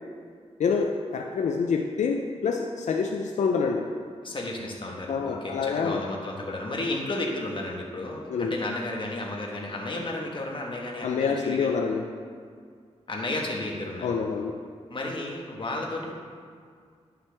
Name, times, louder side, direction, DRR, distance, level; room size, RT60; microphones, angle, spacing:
voice 1, 0.6-3.8 5.1-6.0 8.3-8.6 11.0-12.0 14.0-14.5, left 5 dB, 85° left, 2 dB, 0.5 m, -26 dB
voice 2, 4.2-11.8 13.1-14.2 14.9-16.1, left 2 dB, 45° left, -1 dB, 1.3 m, -33 dB
9.8 x 5.7 x 3.4 m, 2.1 s
cardioid pair, 80°, 12 cm